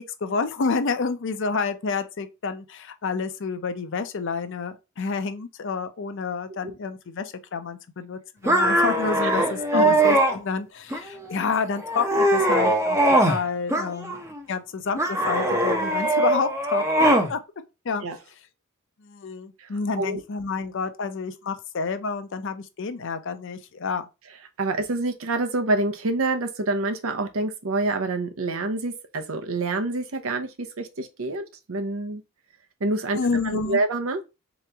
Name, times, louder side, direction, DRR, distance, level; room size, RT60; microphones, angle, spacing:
voice 1, 0.0-14.2 14.5-17.4 17.8-18.0 19.0-24.0 33.1-33.8, left 4 dB, 60° left, 0.5 m, -29 dB
sound 1, 8.5-10.4 10.9-11.4 11.8-13.4 13.7-14.4 15.0-17.3, right 1 dB, 15° right, 0.6 m, -21 dB
voice 2, 24.6-32.2 32.8-33.2 33.4-34.2, right 2 dB, 70° right, 0.7 m, -27 dB
3.8 x 3.0 x 3.3 m
head